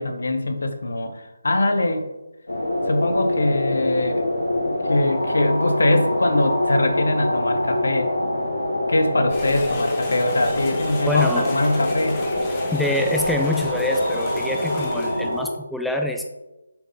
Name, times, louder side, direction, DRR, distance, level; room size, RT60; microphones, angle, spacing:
voice 1, 0.0-2.1 2.9-4.3 4.9-8.1 8.9-12.2, left 2 dB, 70° left, 7 dB, 0.9 m, -22 dB
sound 1, 2.5-15.4, left 1 dB, 85° left, 2.1 m, -25 dB
sound 2, 9.3-15.4, left 2 dB, 20° left, 1.1 m, -35 dB
voice 2, 11.1-11.5 12.7-16.2, left 1 dB, ahead, 3 dB, 0.3 m, -25 dB
7.0 x 4.1 x 3.8 m, 1.0 s
figure-of-eight pair, 155°, 0 cm